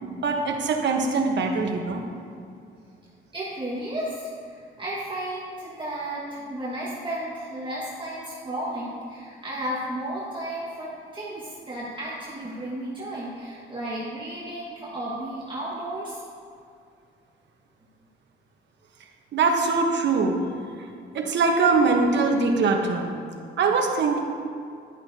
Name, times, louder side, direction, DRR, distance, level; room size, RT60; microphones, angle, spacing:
voice 1, 0.0-2.0 19.3-20.4 21.1-23.1 23.6-24.2, right 4 dB, 65° right, 2 dB, 1.3 m, -22 dB
voice 2, 3.3-16.2, right 1 dB, 25° right, -7 dB, 1.9 m, -33 dB
11.0 x 10.5 x 2.9 m, 2.4 s
cardioid pair, 90°, 20 cm